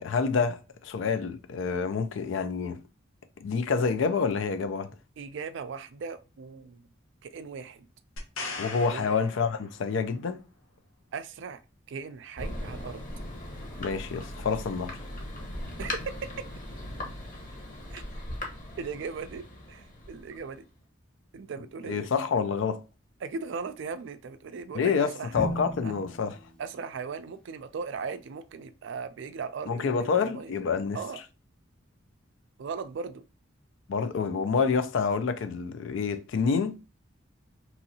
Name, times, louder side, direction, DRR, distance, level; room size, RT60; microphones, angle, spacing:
voice 1, 0.0-2.8 3.4-4.9 8.6-10.4 13.8-15.0 21.9-22.8 24.7-26.4 29.7-31.0 33.9-36.8, left 5 dB, 70° left, 0.4 m, -28 dB
voice 2, 5.2-6.9 7.2-7.9 8.9-9.2 11.1-11.6 11.9-13.0 15.8-16.3 17.9-18.0 18.8-20.7 21.3-22.1 23.2-25.9 26.6-30.5 30.9-31.2 32.6-33.2, right 5 dB, 60° right, 0.3 m, -38 dB
sound 1, 8.2-10.1 13.8-13.9, left 3 dB, 85° left, 0.8 m, -39 dB
Thunder, 12.4-20.7, left 1 dB, 40° left, 0.9 m, -39 dB
Drum, 25.4-27.4, right 1 dB, 5° left, 0.5 m, -38 dB
3.0 x 2.7 x 2.7 m
head